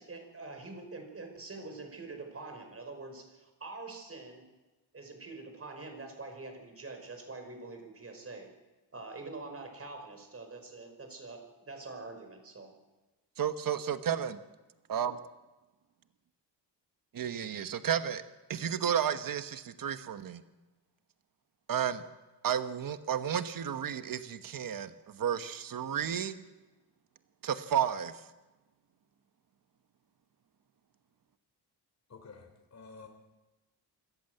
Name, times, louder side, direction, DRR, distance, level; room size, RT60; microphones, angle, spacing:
voice 1, 0.0-4.4 4.9-8.5 8.9-12.7, right 3 dB, 35° right, 5 dB, 5.2 m, -45 dB
voice 2, 13.4-14.4 14.9-15.2 17.1-18.2 18.5-20.4 21.7-22.0 22.4-26.4 27.4-28.2, right 9 dB, 50° right, 11 dB, 1.2 m, -32 dB
voice 3, 32.1-33.1, left 4 dB, 40° left, 4 dB, 3.4 m, -51 dB
25.5 x 14.5 x 8.0 m, 1.1 s
wide cardioid pair, 125°, 42 cm